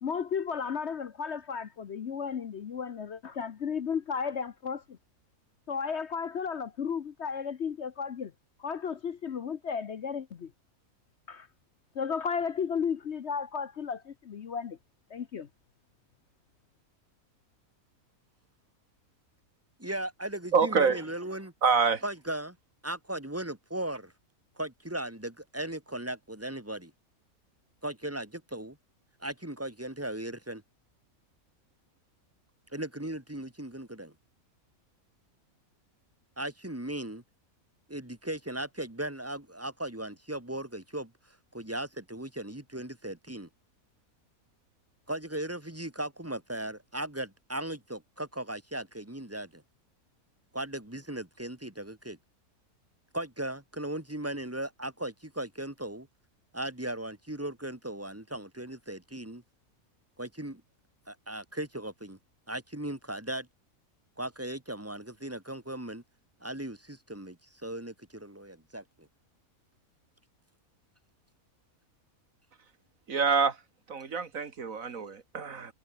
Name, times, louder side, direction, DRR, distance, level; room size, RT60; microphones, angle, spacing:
voice 1, 0.0-5.0 5.7-8.3 8.6-10.5 11.3-11.5 11.9-14.8 15.1-15.5, left 6 dB, 55° left, 1.1 m, -34 dB
voice 2, 19.8-21.5 22.0-22.6 22.8-24.1 24.6-26.9 27.8-28.8 29.2-30.6 32.7-34.1 36.4-37.2 37.9-41.1 41.5-43.5 45.1-49.6 50.5-52.2 53.1-56.1 56.5-59.4 60.2-60.6 61.1-62.2 62.5-63.5 64.2-66.0 66.4-67.4 67.6-68.8, right 1 dB, 10° right, 2.5 m, -37 dB
voice 3, 20.5-21.0 21.6-22.0 73.1-73.6 73.9-75.7, right 5 dB, 65° right, 2.1 m, -26 dB
omnidirectional pair, 1.5 m